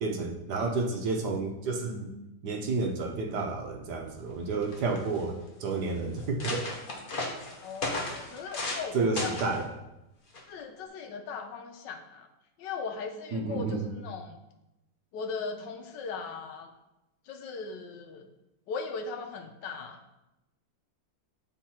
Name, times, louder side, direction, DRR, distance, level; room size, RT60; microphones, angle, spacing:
voice 1, 0.0-2.1 2.4-6.7 8.9-9.6 13.3-13.9, right 3 dB, 65° right, 2 dB, 1.3 m, -30 dB
sound 1, 4.3-4.4 4.6-5.2 5.8-5.9 6.2-8.9 9.2-9.6 10.3-10.6, left 2 dB, 40° left, 0.8 m, -35 dB
voice 2, 7.6-9.3 10.5-12.3 12.6-14.4 15.1-16.7 17.3-18.3 18.7-20.0, left 5 dB, 75° left, 5 dB, 1.3 m, -38 dB
7.6 x 3.7 x 4.3 m, 0.93 s
omnidirectional pair, 2.1 m